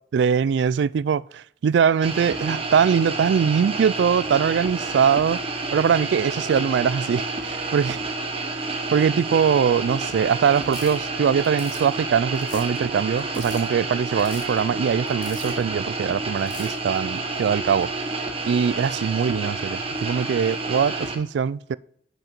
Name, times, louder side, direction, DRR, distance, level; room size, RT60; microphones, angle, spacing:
voice 1, 0.1-5.4 5.7-8.0 8.9-17.9 18.5-21.8, right 7 dB, 80° right, 0.3 m, -22 dB
sound 1, 2.0-21.2, right 3 dB, 35° right, 1.2 m, -29 dB
sound 2, 10.6-11.0 11.4-11.9 12.4-12.8 13.2-13.7 14.2-14.6 15.1-15.6 16.4-16.8, left 3 dB, 25° left, 2.3 m, -40 dB
10.5 x 6.2 x 4.4 m
head